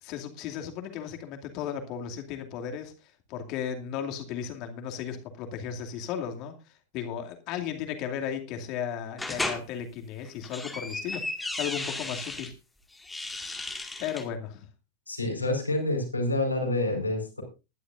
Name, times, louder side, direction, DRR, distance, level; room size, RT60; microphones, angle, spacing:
voice 1, 0.0-2.9 3.3-6.5 6.9-11.2 11.6-12.5 13.6-13.7 14.0-14.7, left 8 dB, 40° left, 4 dB, 2.5 m, -35 dB
sound 1, 9.2-9.6 10.3-12.5 13.0-14.3, left 2 dB, 5° left, 2.0 m, -34 dB
voice 2, 15.1-17.4, left 2 dB, 80° left, 2 dB, 4.8 m, -28 dB
20.5 x 11.5 x 2.6 m, 0.29 s
figure-of-eight pair, 90°, 0 cm